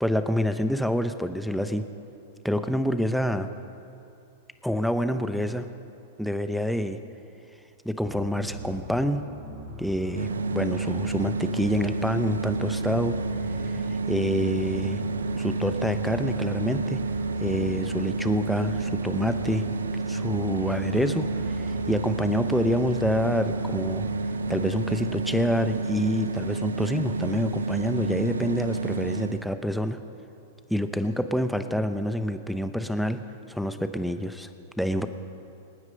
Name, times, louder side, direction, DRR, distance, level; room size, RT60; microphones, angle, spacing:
voice 1, 0.0-1.8 2.4-3.5 4.6-5.7 6.2-7.0 7.8-9.2 9.8-13.1 13.7-15.0 15.4-17.0 17.4-19.6 20.1-24.1 24.5-30.0 30.7-33.2 33.5-34.5 34.8-35.1, equal, ahead, 9 dB, 0.9 m, -27 dB
sound 1, 8.0-24.8, equal, 45° right, 2.9 m, -40 dB
sound 2, 10.1-29.4, right 3 dB, 80° right, 0.7 m, -30 dB
26.5 x 9.5 x 5.4 m, 2.7 s
figure-of-eight pair, 105°, 0 cm